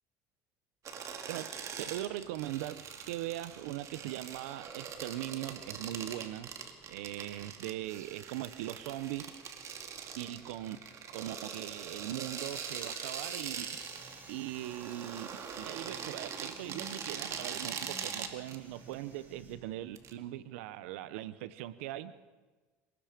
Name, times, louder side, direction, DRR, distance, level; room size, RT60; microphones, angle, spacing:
sound 1, 0.8-20.1, right 7 dB, 50° right, 2.4 m, -43 dB
voice 1, 1.3-6.5 6.9-9.3 10.2-10.8 11.1-13.8 14.3-15.3 15.6-22.2, right 14 dB, 90° right, 0.9 m, -40 dB
sound 2, 12.3-19.5, right 2 dB, 30° right, 7.9 m, -54 dB
27.0 x 20.0 x 5.2 m
supercardioid pair, 100°, 7 cm